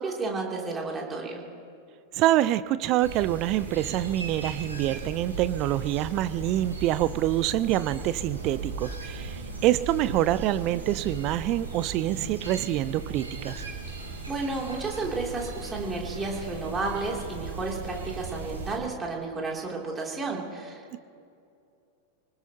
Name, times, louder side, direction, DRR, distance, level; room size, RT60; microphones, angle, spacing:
voice 1, 0.0-1.4 13.9-14.0 14.3-21.0, right 3 dB, 15° right, -1 dB, 3.0 m, -32 dB
voice 2, 2.1-13.6 20.9-21.0, right 14 dB, 40° right, 15 dB, 0.5 m, -26 dB
sound 1, 3.0-18.8, right 3 dB, 80° right, 4.3 m, -37 dB
25.0 x 19.5 x 2.9 m, 2.5 s
figure-of-eight pair, 90°, 0 cm